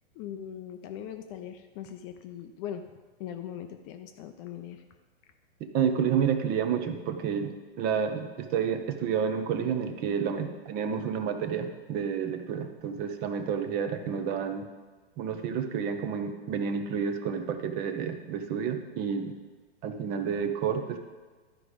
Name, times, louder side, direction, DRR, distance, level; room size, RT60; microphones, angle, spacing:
voice 1, 0.1-2.8 3.2-4.8, left 9 dB, 30° left, 7 dB, 0.5 m, -40 dB
voice 2, 5.6-14.7 15.2-19.4 19.8-21.0, right 7 dB, 25° right, 7 dB, 0.6 m, -30 dB
12.0 x 4.9 x 5.0 m, 1.4 s
hypercardioid pair, 130°, 34 cm